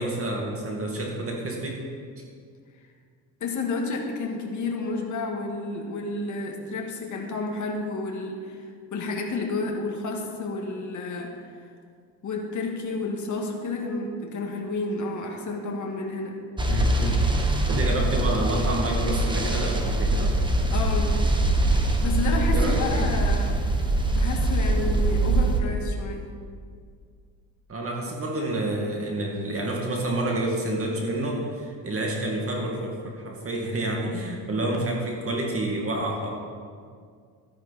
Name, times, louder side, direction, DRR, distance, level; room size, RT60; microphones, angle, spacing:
voice 1, 0.0-1.8 2.2-2.3 16.7-17.4 17.7-20.3 22.5-23.1 27.7-36.3, right 1 dB, 35° right, -1 dB, 2.1 m, -29 dB
voice 2, 3.4-11.5 12.2-16.4 20.7-21.2 21.7-26.3, left 3 dB, 50° left, 1 dB, 1.9 m, -31 dB
sound 1, 16.6-25.6, right 2 dB, 10° right, 1.3 m, -23 dB
13.0 x 10.0 x 4.2 m, 2.1 s
cardioid pair, 105°, 38 cm